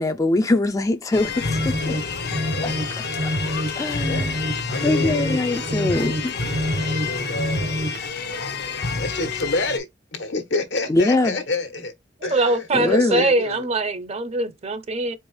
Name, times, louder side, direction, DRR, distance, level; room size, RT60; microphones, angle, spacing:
voice 1, 0.0-1.9 2.6-3.3 3.8-4.4 4.8-6.4 10.9-11.4 12.7-13.3, left 2 dB, 20° left, 0.4 m, -23 dB
sound 1, 1.1-9.8, left 5 dB, 60° left, 0.7 m, -29 dB
sound 2, 1.3-8.1, equal, 75° right, 1.1 m, -27 dB
voice 2, 2.4-2.7 4.0-4.3 4.7-5.3 6.8-8.0 8.8-11.9 12.2-13.6, left 3 dB, 85° left, 1.2 m, -29 dB
voice 3, 12.3-15.2, right 2 dB, 35° right, 0.6 m, -22 dB
4.5 x 2.8 x 3.1 m
head